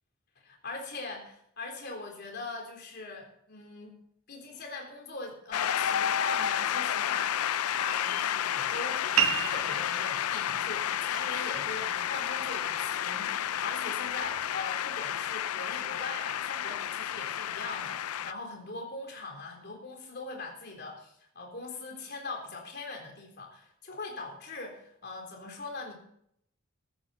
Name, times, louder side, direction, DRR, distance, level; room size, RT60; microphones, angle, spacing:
voice 1, 0.4-4.0 4.3-25.9, left 3 dB, 45° left, 1 dB, 3.7 m, -41 dB
Shout / Cheering / Applause, 5.5-18.3, left 10 dB, 80° left, 0.4 m, -31 dB
sound 1, 9.2-14.2, right 10 dB, 65° right, 0.7 m, -35 dB
15.5 x 13.5 x 4.2 m, 0.71 s
head